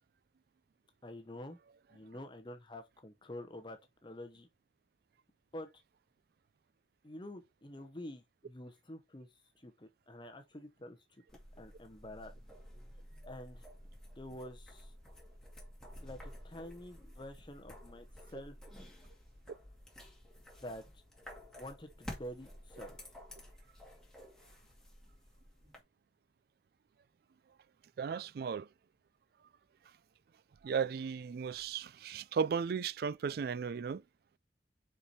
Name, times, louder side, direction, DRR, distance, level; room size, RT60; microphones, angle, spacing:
voice 1, 1.0-1.6 1.9-4.5 5.5-5.7 7.0-9.3 9.6-11.0 11.6-12.3 13.2-13.6 14.2-14.9 16.0-18.5 20.6-20.8 21.6-23.0, left 1 dB, 25° left, 0.8 m, -48 dB
sound 1, 11.3-25.8, equal, 5° left, 2.2 m, -52 dB
voice 2, 28.0-28.7 30.6-34.0, right 6 dB, 60° right, 0.3 m, -35 dB
5.5 x 4.8 x 4.2 m
head